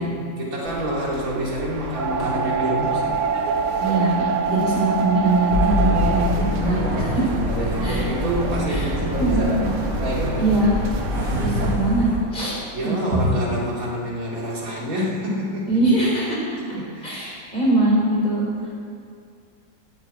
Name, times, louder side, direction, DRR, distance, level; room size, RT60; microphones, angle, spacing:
voice 1, 0.0-3.2 6.6-10.5 12.7-15.8 16.7-17.2, equal, 45° right, -4 dB, 2.7 m, -28 dB
sound 1, 0.7-11.8, right 5 dB, 70° right, 0.7 m, -27 dB
voice 2, 3.8-7.1 7.8-8.0 8.7-8.9 9.2-9.5 10.4-10.8 11.3-12.6 12.8-13.3 15.7-16.6 17.0-18.5, right 2 dB, 25° left, -6 dB, 3.9 m, -22 dB
sound 2, 5.5-12.2, left 1 dB, 20° right, 3.9 m, -25 dB
10.0 x 7.3 x 8.9 m, 2.4 s
omnidirectional pair, 2.1 m